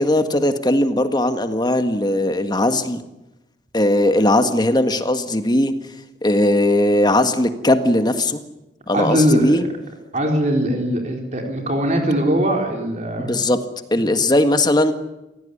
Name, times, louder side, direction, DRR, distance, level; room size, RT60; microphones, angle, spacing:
voice 1, 0.0-3.0 3.7-5.7 6.2-8.4 8.9-9.6 13.3-13.6 13.9-14.9, left 1 dB, 25° left, 9 dB, 1.7 m, -18 dB
voice 2, 8.9-9.6 10.1-13.3, equal, 40° right, 2 dB, 4.0 m, -20 dB
26.5 x 17.0 x 9.9 m, 0.95 s
head